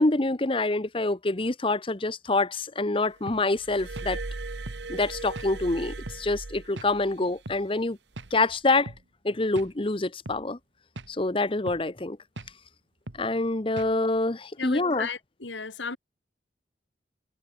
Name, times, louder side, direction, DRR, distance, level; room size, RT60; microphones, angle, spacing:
voice 1, 0.0-4.2 4.9-8.0 8.3-8.9 9.2-10.6 11.1-12.2 13.2-15.1, left 2 dB, 30° left, 0.9 m, -26 dB
sound 1, 3.3-3.5 4.0-4.1 4.7-4.8 5.4-5.5 6.1-6.3 6.8-6.9 7.5-7.6 8.2-8.4 8.9-9.0 9.6-9.7 10.3-10.4 11.0-11.2 11.7-11.9 12.4-12.5 13.1-13.3 13.8-14.0, right 2 dB, 85° right, 1.8 m, -40 dB
Glass, 3.6-7.2 8.1-8.4, right 3 dB, 70° right, 1.0 m, -38 dB
voice 2, 14.6-16.0, left 4 dB, 85° left, 2.3 m, -34 dB
head